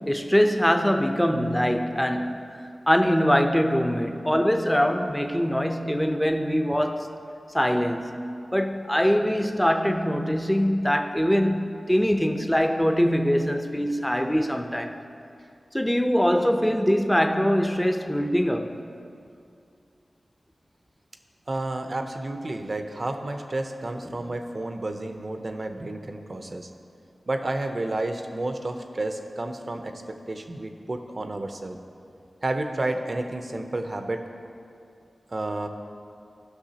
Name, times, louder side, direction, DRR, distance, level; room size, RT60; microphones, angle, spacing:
voice 1, 0.0-7.1 7.5-15.0 15.7-18.7 24.0-24.2, equal, 5° left, 0.6 m, -23 dB
voice 2, 21.5-26.7 27.3-31.8 32.4-34.2 35.3-35.7, right 2 dB, 55° right, 0.7 m, -31 dB
14.5 x 6.0 x 2.9 m
cardioid pair, 40°, 0 cm